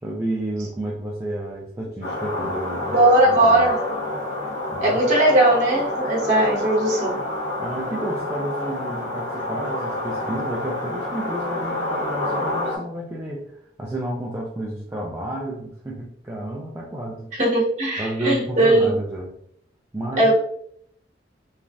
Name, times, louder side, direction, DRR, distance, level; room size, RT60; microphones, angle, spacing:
voice 1, 0.0-3.0 3.2-3.7 4.7-5.0 7.6-13.5 13.8-17.3 18.0-19.3 19.9-20.3, right 1 dB, 15° right, -4 dB, 0.4 m, -30 dB
sound 1, 2.0-12.8, left 1 dB, 70° left, 1.2 m, -28 dB
voice 2, 2.9-3.8 4.8-7.2 17.3-18.9 20.2-20.3, right 1 dB, 45° right, -5 dB, 1.1 m, -18 dB
3.1 x 2.4 x 2.4 m, 0.67 s
head